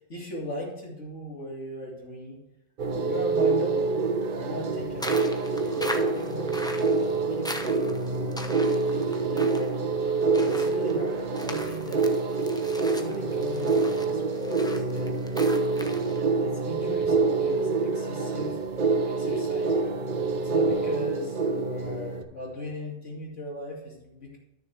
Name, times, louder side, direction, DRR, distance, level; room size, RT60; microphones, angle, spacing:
voice 1, 0.1-2.4 2.9-12.1 12.8-15.1 15.8-20.0 20.4-24.4, left 1 dB, 70° left, -2 dB, 2.8 m, -38 dB
sound 1, 2.8-22.2, right 4 dB, 45° right, 0.8 m, -26 dB
sound 2, 5.0-16.2, left 1 dB, 5° left, 0.6 m, -40 dB
13.0 x 6.6 x 3.4 m, 0.95 s
omnidirectional pair, 1.3 m